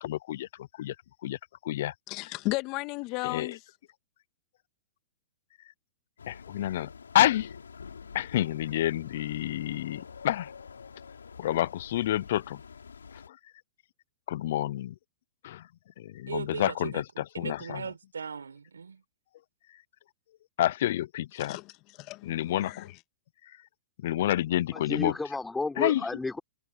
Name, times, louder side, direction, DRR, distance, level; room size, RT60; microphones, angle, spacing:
voice 1, 0.0-0.9 1.2-1.4 1.6-1.9 3.2-3.5 6.3-6.9 7.1-7.5 8.1-10.5 11.4-12.6 13.3-13.4 14.3-14.9 15.4-15.6 16.0-17.8 20.6-21.6 22.2-22.9 24.0-25.1 25.8-26.1, left 13 dB, 60° left, 0.7 m, -29 dB
voice 2, 2.1-3.6 21.4-21.6 22.0-22.9, left 23 dB, 40° left, 2.0 m, -34 dB
sound 1, 6.2-13.3, left 6 dB, 90° left, 4.6 m, -47 dB
voice 3, 16.3-19.0, right 6 dB, 90° right, 4.5 m, -38 dB
voice 4, 24.7-26.4, left 3 dB, 10° left, 4.4 m, -32 dB
hypercardioid pair, 120°, 0 cm